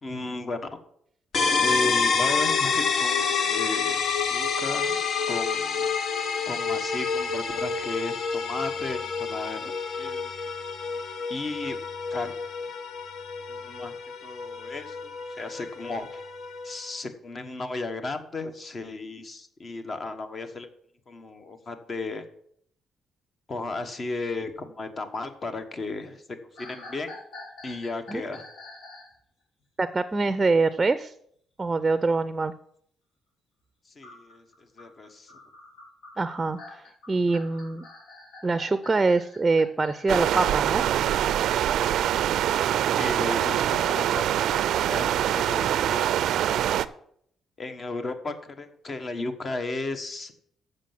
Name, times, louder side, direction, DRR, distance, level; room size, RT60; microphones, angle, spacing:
voice 1, 0.0-0.7 1.6-4.0 4.3-5.0 5.3-5.9 6.5-10.3 10.9-11.8 12.1-12.4 13.5-16.2 16.6-20.7 21.1-22.2 23.5-26.2 26.5-27.2 27.6-28.5 33.8-35.3 42.9-46.4 46.7-46.9 47.6-50.3, left 3 dB, 40° left, 8 dB, 1.3 m, -35 dB
sound 1, 1.3-16.9, left 5 dB, 60° left, 0.9 m, -28 dB
sound 2, 26.6-29.2 34.0-40.6, left 2 dB, 80° left, 2.9 m, -46 dB
voice 2, 29.8-31.1 31.6-32.5 36.2-36.6 37.1-37.8 38.4-40.8, right 3 dB, 20° right, 13 dB, 0.5 m, -24 dB
sound 3, 40.1-46.9, right 11 dB, 80° right, 0.4 m, -24 dB
7.4 x 6.6 x 7.4 m, 0.67 s
cardioid pair, 90°, 0 cm